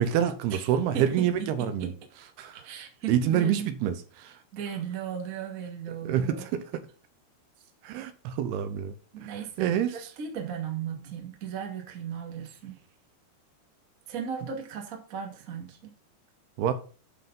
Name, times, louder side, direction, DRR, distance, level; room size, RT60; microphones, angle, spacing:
voice 1, 0.0-1.9 2.4-2.6 3.1-4.3 6.1-6.6 7.8-8.9 9.2-9.3 9.6-9.9 16.6-16.7, right 9 dB, 80° right, 2.7 m, -27 dB
voice 2, 0.9-1.3 1.6-1.9 2.5-3.7 4.5-6.5 9.1-12.8 14.1-15.9, right 8 dB, 60° right, 0.8 m, -36 dB
11.5 x 4.6 x 5.4 m
omnidirectional pair, 4.9 m